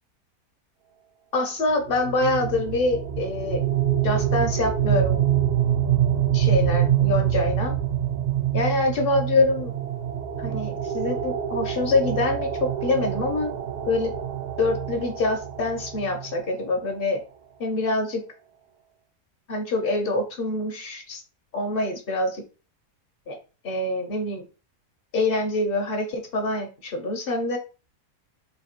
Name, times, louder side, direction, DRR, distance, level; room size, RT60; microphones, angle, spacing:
voice 1, 1.3-3.6 4.0-5.2 6.3-7.7 8.5-9.7 10.4-13.5 13.9-14.1 14.6-17.2 17.6-18.2 19.5-21.2 21.5-22.4 23.3-23.4 23.6-24.4 25.1-27.6, left 2 dB, 55° left, 4 dB, 0.6 m, -25 dB
sound 1, 1.9-16.8, right 10 dB, 70° right, 1.1 m, -25 dB
3.3 x 2.6 x 4.3 m, 0.34 s
omnidirectional pair, 1.7 m